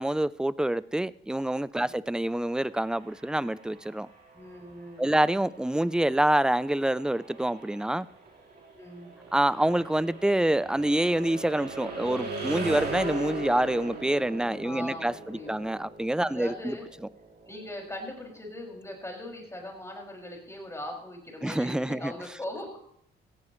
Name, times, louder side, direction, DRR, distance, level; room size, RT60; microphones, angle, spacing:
voice 1, 0.0-4.1 5.0-8.1 9.3-16.8 21.4-22.1, right 1 dB, 5° right, 0.5 m, -26 dB
sound 1, 2.5-18.3, right 3 dB, 55° right, 4.2 m, -40 dB
voice 2, 4.3-5.2 8.7-9.1 14.6-15.6 16.3-16.9 17.5-22.8, left 1 dB, 15° left, 6.1 m, -40 dB
17.5 x 15.0 x 3.2 m
cardioid pair, 90°, 20 cm